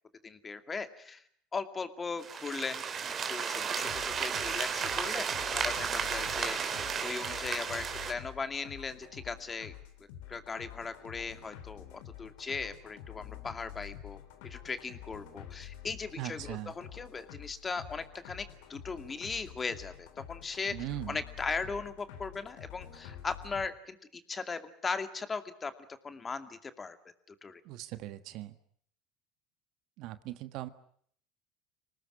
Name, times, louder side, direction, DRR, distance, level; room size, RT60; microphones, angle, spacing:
voice 1, 0.2-1.2 1.5-2.8 3.3-9.7 10.3-20.7 21.1-25.7 26.0-27.0 27.3-27.6, left 4 dB, 25° left, 9 dB, 2.4 m, -38 dB
sound 1, 2.2-8.1, right 6 dB, 35° right, 3.4 m, -33 dB
sound 2, 3.8-23.7, left 11 dB, 70° left, 3.4 m, -48 dB
voice 2, 16.2-16.7 20.7-21.2 27.6-28.6 30.0-30.7, right 15 dB, 60° right, 12 dB, 1.6 m, -40 dB
25.5 x 19.0 x 9.9 m, 0.65 s
hypercardioid pair, 85°, 0 cm